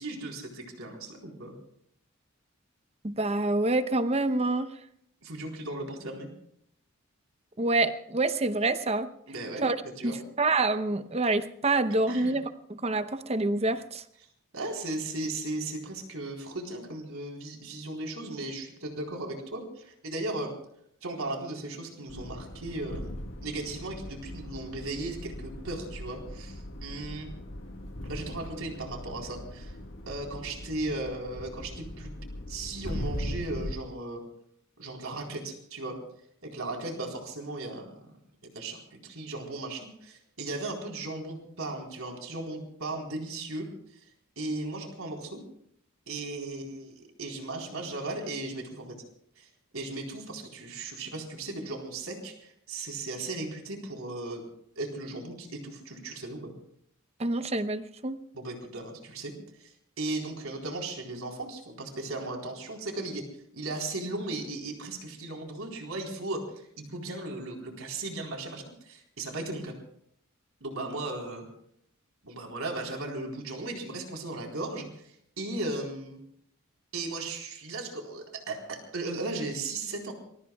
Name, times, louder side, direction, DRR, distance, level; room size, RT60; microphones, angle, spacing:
voice 1, 0.0-1.6 5.2-6.3 9.3-10.2 12.1-12.3 14.5-20.5 21.0-27.3 28.0-29.8 30.1-32.1 32.5-34.2 34.8-36.0 36.4-38.0 38.4-43.7 44.4-45.4 46.1-48.9 49.4-54.4 54.8-56.5 58.3-59.3 59.6-63.2 63.5-69.7 70.6-71.4 72.2-76.2 76.9-80.1, right 2 dB, 85° right, 1 dB, 4.0 m, -36 dB
voice 2, 3.0-4.7 7.6-9.1 9.6-9.8 10.0-12.4 12.7-14.0 57.2-58.2, right 2 dB, 30° right, 11 dB, 0.7 m, -27 dB
sound 1, 22.1-33.8, left 1 dB, 65° left, 1.7 m, -40 dB
27.0 x 21.5 x 2.3 m, 0.69 s
head